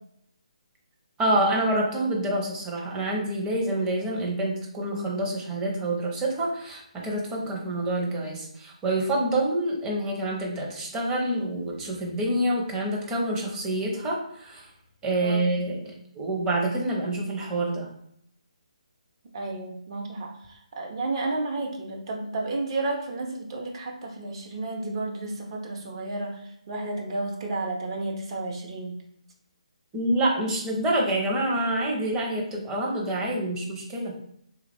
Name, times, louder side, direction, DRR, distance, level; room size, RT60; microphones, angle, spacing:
voice 1, 1.2-14.7 15.0-17.9 29.9-34.1, right 1 dB, 15° right, -2 dB, 0.8 m, -27 dB
voice 2, 19.3-29.0, right 2 dB, 40° right, 1 dB, 0.8 m, -32 dB
3.4 x 2.4 x 3.4 m, 0.71 s
figure-of-eight pair, 150°, 4 cm